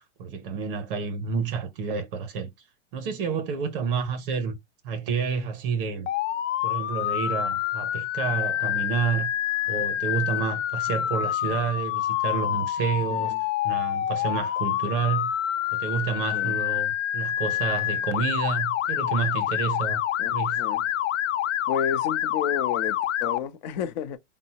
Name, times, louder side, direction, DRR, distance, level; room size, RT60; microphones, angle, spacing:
voice 1, 0.0-2.5 2.9-4.6 4.8-6.1 6.6-9.3 9.7-13.3 13.6-15.3 15.7-20.0 20.3-20.6, right 6 dB, 50° right, 0.8 m, -29 dB
Motor vehicle (road) / Siren, 6.1-23.4, left 12 dB, 80° left, 0.6 m, -27 dB
voice 2, 13.1-13.4 16.3-16.6 20.2-21.0 21.7-24.2, left 8 dB, 40° left, 0.5 m, -31 dB
3.6 x 2.0 x 2.8 m
supercardioid pair, 155°, 36 cm